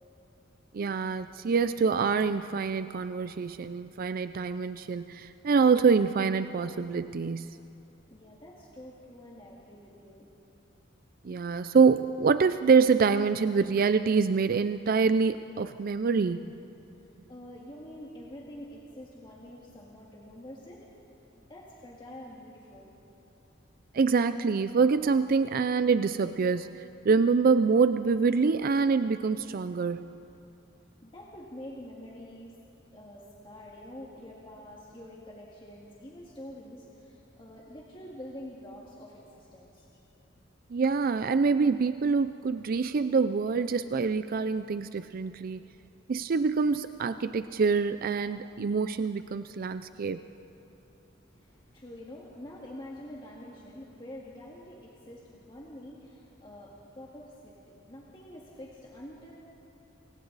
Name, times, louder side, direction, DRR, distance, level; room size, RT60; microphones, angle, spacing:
voice 1, 0.7-7.6 11.2-16.5 23.9-26.7 27.0-30.1 40.7-45.6 46.1-50.2, right 5 dB, 50° right, 12 dB, 0.4 m, -25 dB
voice 2, 8.1-10.3 17.3-20.9 21.5-22.9 31.0-32.6 32.9-39.9 51.2-59.3, left 1 dB, 25° left, -4 dB, 2.0 m, -46 dB
28.0 x 24.0 x 4.0 m, 2.9 s
head